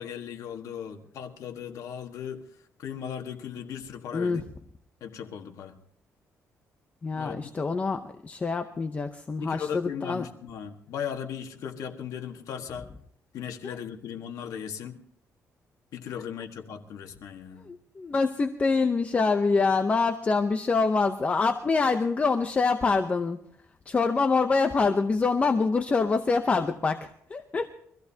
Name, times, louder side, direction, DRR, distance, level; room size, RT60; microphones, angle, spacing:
voice 1, 0.0-2.4 2.8-4.4 5.0-5.8 7.1-7.5 9.4-12.9 13.3-15.0 15.9-17.7, left 8 dB, 80° left, 4 dB, 1.5 m, -37 dB
voice 2, 7.0-10.3 13.6-13.8 17.7-23.4 23.9-27.7, left 4 dB, 25° left, 7 dB, 0.7 m, -25 dB
24.0 x 15.0 x 2.8 m, 0.68 s
cardioid pair, 145°, 6 cm